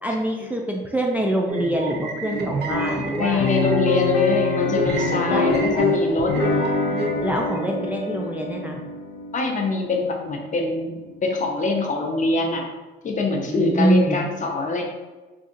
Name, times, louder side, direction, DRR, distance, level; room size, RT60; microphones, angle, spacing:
voice 1, 0.0-3.5 5.3-5.5 7.2-8.8 13.5-14.2, right 1 dB, 10° right, 0 dB, 0.3 m, -24 dB
sound 1, 1.5-7.6, right 3 dB, 55° right, 0.7 m, -30 dB
sound 2, 2.7-11.2, left 3 dB, 85° left, 0.6 m, -25 dB
voice 2, 3.2-6.3 9.3-12.6 13.0-14.8, left 3 dB, 40° left, 1 dB, 0.6 m, -24 dB
2.6 x 2.4 x 3.8 m, 1.2 s
cardioid pair, 90°, 20 cm